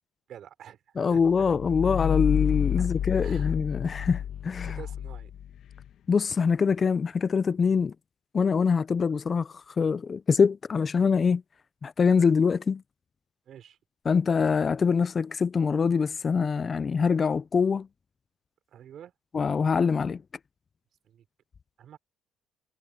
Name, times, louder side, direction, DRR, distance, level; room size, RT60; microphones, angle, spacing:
voice 1, 0.3-1.5 2.8-2.9 3.2-3.6 4.0-4.1 4.6-5.3 13.4-13.8 18.7-19.1 21.0-21.2 21.8-22.0, right 10 dB, 55° right, 4.9 m, -48 dB
voice 2, 1.0-4.8 6.1-7.9 8.3-11.4 11.8-12.8 14.1-17.9 19.3-20.2, left 5 dB, 30° left, 0.5 m, -24 dB
sound 1, 1.2-5.9, left 10 dB, 55° left, 1.6 m, -29 dB
cardioid pair, 110°, 0 cm